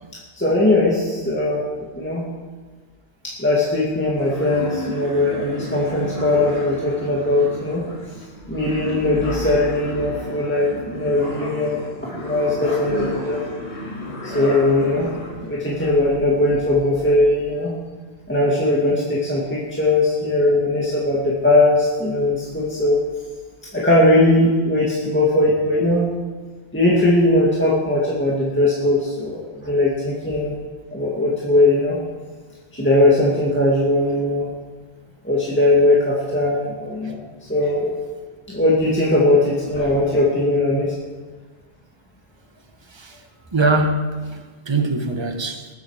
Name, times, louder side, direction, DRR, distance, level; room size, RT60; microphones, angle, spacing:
voice 1, 0.3-1.6 1.9-2.2 3.4-7.8 8.5-13.4 14.2-15.1 15.4-17.8 18.3-23.0 23.7-26.1 26.7-30.6 30.9-32.0 32.7-34.5 35.2-37.2 37.5-37.9 38.5-40.9, left 2 dB, 10° left, -6 dB, 2.0 m, -19 dB
sound 1, 4.2-16.1, left 1 dB, 90° left, 4.2 m, -32 dB
voice 2, 43.5-45.7, right 2 dB, 25° right, 5 dB, 1.2 m, -22 dB
19.5 x 8.0 x 4.9 m, 1.4 s
omnidirectional pair, 1.1 m